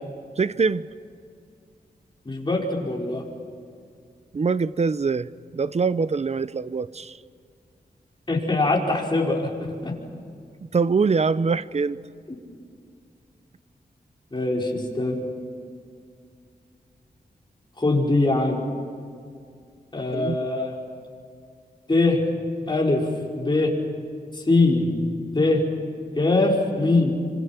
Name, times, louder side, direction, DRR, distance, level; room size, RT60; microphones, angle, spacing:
voice 1, 0.4-0.9 4.3-7.1 10.7-12.0 20.1-20.4, right 4 dB, 40° right, 0.7 m, -23 dB
voice 2, 2.2-3.2 8.3-9.9 14.3-15.2 17.8-18.6 19.9-20.8 21.9-22.2 22.7-23.1 23.3-23.7 24.3-25.0 25.3-25.6 26.1-27.2, left 2 dB, 25° left, 5.1 m, -22 dB
26.5 x 26.0 x 6.0 m
wide cardioid pair, 95°, 17 cm